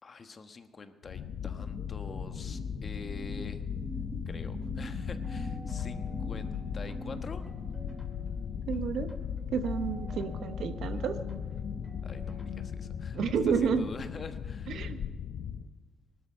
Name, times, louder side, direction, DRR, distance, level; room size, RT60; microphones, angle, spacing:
voice 1, 0.0-3.6 4.3-7.6 12.0-14.9, left 4 dB, 40° left, 8 dB, 1.2 m, -46 dB
sound 1, 1.0-15.7, left 7 dB, 70° left, 0.8 m, -37 dB
sound 2, 1.6-8.3, right 2 dB, 20° right, 0.5 m, -44 dB
sound 3, 5.2-14.0, left 1 dB, 5° left, 2.7 m, -53 dB
voice 2, 8.7-9.1 9.5-11.2 13.1-13.9 14.7-15.0, right 6 dB, 70° right, 9 dB, 1.1 m, -30 dB
19.0 x 12.5 x 5.6 m, 1.5 s
cardioid pair, 90°, 0 cm